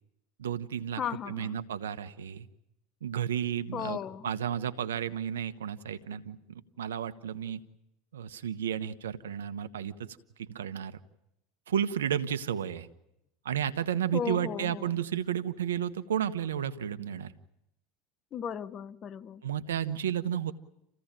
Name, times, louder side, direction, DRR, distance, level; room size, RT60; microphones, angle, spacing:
voice 1, 0.4-2.5 3.0-4.0 4.2-6.4 6.8-7.6 8.1-9.9 10.4-11.0 11.7-12.9 13.4-17.3 19.4-20.5, right 9 dB, 85° right, 1.2 m, -32 dB
voice 2, 1.0-1.6 3.7-4.3 14.1-14.9 18.3-19.4, left 8 dB, 35° left, 1.0 m, -36 dB
28.0 x 16.0 x 9.0 m
hypercardioid pair, 90°, 0 cm